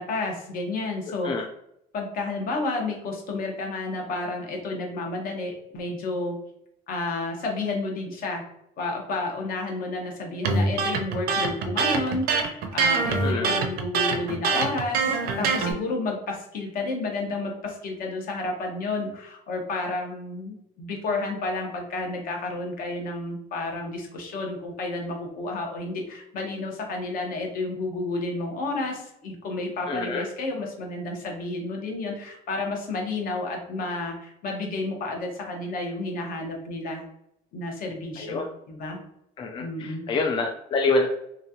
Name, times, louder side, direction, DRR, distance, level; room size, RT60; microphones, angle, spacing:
voice 1, 0.0-1.5 1.9-6.4 6.9-8.4 8.8-37.0 37.5-39.0 39.6-40.0, left 2 dB, 60° left, 1 dB, 1.1 m, -31 dB
Electric guitar, 10.4-15.7, right 4 dB, 65° right, 0.6 m, -24 dB
voice 2, 13.2-13.5 29.9-30.2 38.2-38.4 39.4-41.1, left 3 dB, 30° left, 2 dB, 0.4 m, -26 dB
3.1 x 2.4 x 2.7 m, 0.79 s
cardioid pair, 110°, 17 cm